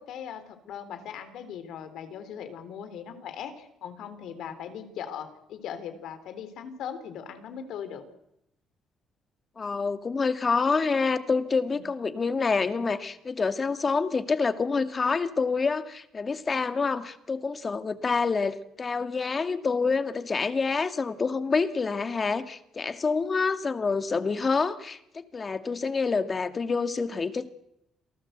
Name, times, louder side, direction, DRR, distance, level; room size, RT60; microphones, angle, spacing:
voice 1, 0.0-8.0 11.7-11.9, left 8 dB, 80° left, 10 dB, 3.7 m, -39 dB
voice 2, 9.6-27.5, left 4 dB, 35° left, 10 dB, 2.0 m, -27 dB
28.0 x 18.0 x 8.1 m, 0.82 s
cardioid pair, 90°, 0 cm